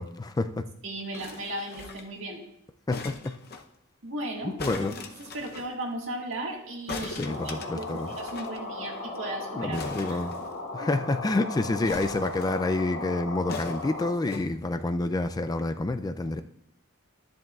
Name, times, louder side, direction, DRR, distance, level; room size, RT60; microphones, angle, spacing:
voice 1, 0.0-0.7 2.9-3.4 4.4-4.9 7.2-8.1 9.6-10.3 10.7-16.4, left 2 dB, 20° left, 0.3 m, -28 dB
voice 2, 0.8-2.4 4.0-4.8 5.2-10.2 10.8-11.0, right 1 dB, 70° right, 1.8 m, -36 dB
sound 1, 1.1-2.2 2.9-3.6 4.6-5.7 6.9-8.6 8.8-8.9 9.1-9.3 9.7-10.9 11.8-12.8 13.5-14.5 15.2-15.3, left 4 dB, 50° left, 0.7 m, -40 dB
sound 2, 7.2-14.1, left 2 dB, 85° left, 2.2 m, -37 dB
13.0 x 10.5 x 2.4 m
head